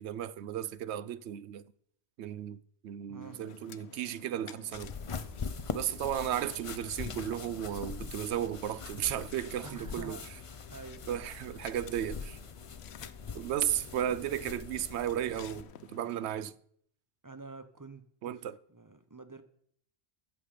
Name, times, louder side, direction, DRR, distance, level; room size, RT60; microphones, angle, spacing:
voice 1, 0.0-1.7 2.2-4.9 5.7-10.2 11.1-12.4 13.3-16.5 18.2-18.6, right 11 dB, 80° right, 0.9 m, -34 dB
voice 2, 3.1-3.4 9.6-11.1 17.2-18.4 18.7-19.4, right 3 dB, 20° right, 0.6 m, -48 dB
sound 1, 3.2-16.5, left 9 dB, 75° left, 0.9 m, -53 dB
sound 2, 4.7-15.6, left 5 dB, 35° left, 0.6 m, -42 dB
14.5 x 7.5 x 5.0 m
omnidirectional pair, 1.1 m